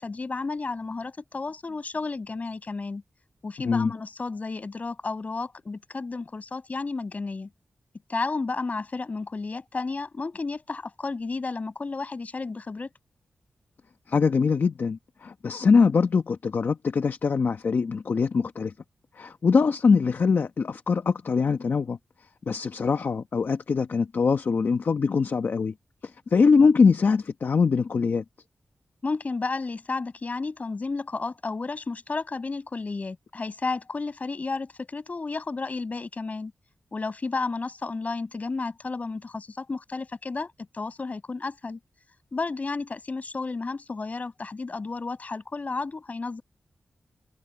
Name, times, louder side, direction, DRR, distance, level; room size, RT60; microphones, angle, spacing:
voice 1, 0.0-3.0 3.4-7.5 8.1-12.9 29.0-36.5 36.9-41.8 42.3-46.4, left 3 dB, 40° left, 6.1 m, -32 dB
voice 2, 14.1-18.7 19.2-22.0 22.5-25.7 26.3-28.2, left 5 dB, 55° left, 1.1 m, -22 dB
wide cardioid pair, 120°, 4 cm